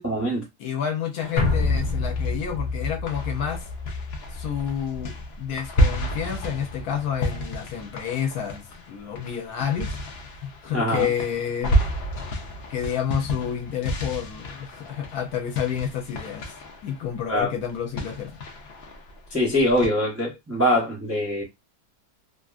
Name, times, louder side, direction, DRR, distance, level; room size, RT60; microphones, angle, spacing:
voice 1, 0.0-0.4 10.7-11.1 17.3-17.5 19.3-21.4, equal, 20° right, 0.4 m, -23 dB
voice 2, 0.6-3.6 4.3-5.1 5.4-9.9 10.4-11.8 12.7-16.5 16.8-18.3, left 8 dB, 70° left, 1.1 m, -29 dB
sound 1, 1.2-2.7 3.1-19.9, equal, 90° left, 0.5 m, -31 dB
sound 2, 1.4-5.8 6.1-6.2, left 3 dB, 50° left, 0.8 m, -28 dB
2.7 x 2.5 x 2.4 m
omnidirectional pair, 1.9 m